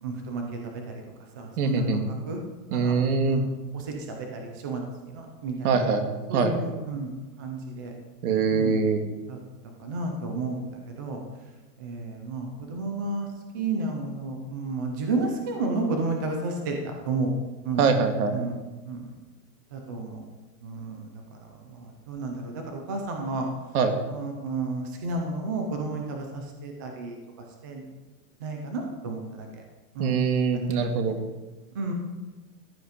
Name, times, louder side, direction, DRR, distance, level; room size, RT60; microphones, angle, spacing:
voice 1, 0.0-1.0 1.3-2.4 2.7-5.8 6.3-7.1 7.4-7.9 8.5-8.8 9.3-9.4 9.8-11.2 11.8-13.3 13.5-17.3 17.6-17.9 18.3-18.6 18.9-19.1 19.7-20.2 20.6-23.5 24.1-27.2 27.6-27.8 28.4-29.5 29.9-30.2 31.7-31.9, right 3 dB, 15° right, 2 dB, 0.4 m, -32 dB
voice 2, 1.6-2.1 2.7-3.4 5.6-6.0 6.3-6.5 8.2-9.0 17.8-18.5 23.7-23.9 30.0-31.2, right 5 dB, 65° right, 6 dB, 2.2 m, -23 dB
14.5 x 10.5 x 5.1 m, 1.2 s
supercardioid pair, 170°, 48 cm